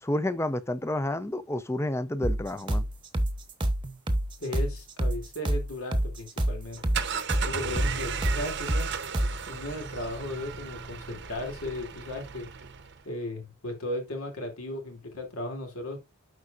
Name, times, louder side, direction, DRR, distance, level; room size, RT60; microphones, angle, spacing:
voice 1, 0.0-2.9, left 1 dB, 10° left, 0.5 m, -30 dB
sound 1, 2.2-9.4, right 1 dB, 20° right, 1.0 m, -28 dB
voice 2, 4.4-6.8 7.4-8.9 9.5-12.5 13.0-16.0, left 1 dB, 75° left, 2.7 m, -36 dB
sound 2, 6.6-13.0, right 6 dB, 50° right, 0.8 m, -35 dB
12.5 x 4.9 x 2.5 m
head